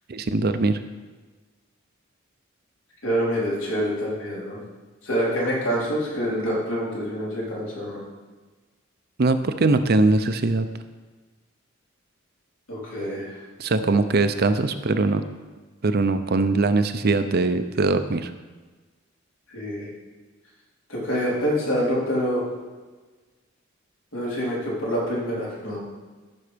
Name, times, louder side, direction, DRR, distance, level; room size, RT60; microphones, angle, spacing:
voice 1, 0.1-0.8 9.2-10.7 13.6-15.2 15.8-18.3, right 3 dB, 50° right, 10 dB, 0.6 m, -21 dB
voice 2, 3.0-4.6 5.0-8.0 12.7-13.4 19.5-19.9 20.9-22.4 24.1-25.8, equal, 75° left, -6 dB, 4.0 m, -26 dB
14.0 x 6.3 x 5.1 m, 1.3 s
head